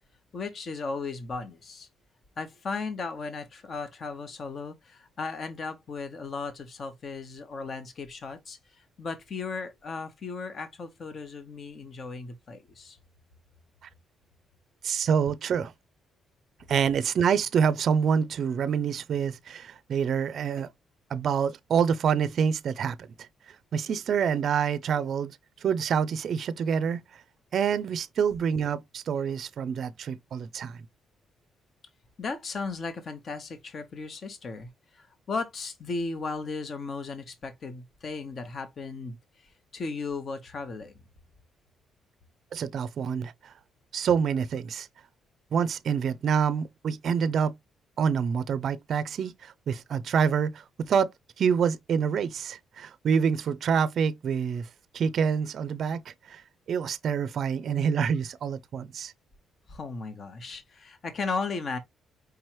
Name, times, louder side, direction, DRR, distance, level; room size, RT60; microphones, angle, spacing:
voice 1, 0.3-1.9 2.4-13.0 32.2-39.2 39.7-40.9 59.7-61.8, left 4 dB, 50° left, 1.0 m, -36 dB
voice 2, 14.8-15.7 16.7-20.7 21.1-23.3 23.7-27.2 27.5-30.8 42.5-43.5 43.9-44.9 45.5-47.5 48.0-51.1 51.4-54.7 54.9-56.4 56.7-59.1, right 7 dB, 60° right, 0.4 m, -27 dB
4.8 x 3.0 x 3.0 m
cardioid pair, 90°, 0 cm